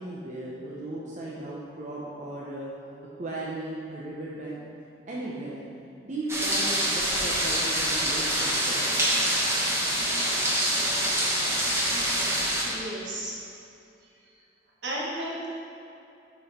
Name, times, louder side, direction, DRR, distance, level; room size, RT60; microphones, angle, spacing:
voice 1, 0.0-2.7 3.2-4.6 5.1-5.6 6.0-9.3, right 1 dB, 40° right, -5 dB, 0.7 m, -36 dB
sound 1, 6.3-12.6, right 1 dB, 15° right, 1.1 m, -25 dB
voice 2, 12.6-13.5 14.8-15.5, right 1 dB, 70° right, -4 dB, 1.4 m, -33 dB
6.1 x 5.3 x 4.2 m, 2.7 s
head